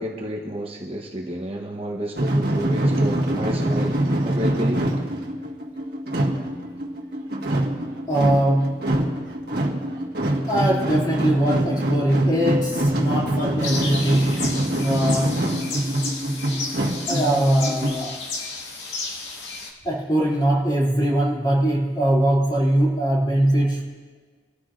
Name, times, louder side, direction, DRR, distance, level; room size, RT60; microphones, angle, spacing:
voice 1, 0.0-4.9, equal, 30° right, -1 dB, 1.1 m, -30 dB
sound 1, 2.2-17.9, right 1 dB, 55° right, 1.7 m, -24 dB
voice 2, 8.1-8.8 10.5-14.4 14.8-15.4 17.1-18.3 19.8-23.9, right 1 dB, 25° left, -5 dB, 2.9 m, -21 dB
sound 2, 13.6-19.7, left 3 dB, 85° left, 2.0 m, -32 dB
25.0 x 14.0 x 2.6 m, 1.5 s
head